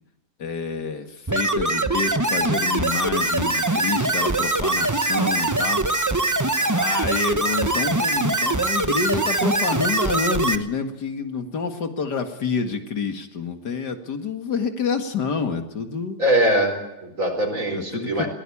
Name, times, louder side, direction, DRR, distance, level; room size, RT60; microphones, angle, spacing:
voice 1, 0.4-5.8 6.6-16.2 17.7-18.3, left 5 dB, 65° left, 6 dB, 2.5 m, -28 dB
sound 1, 1.3-10.5, right 2 dB, 15° right, 0.6 m, -22 dB
voice 2, 16.2-18.3, right 1 dB, 45° right, 5 dB, 4.8 m, -22 dB
22.0 x 17.5 x 8.6 m, 0.93 s
omnidirectional pair, 1.9 m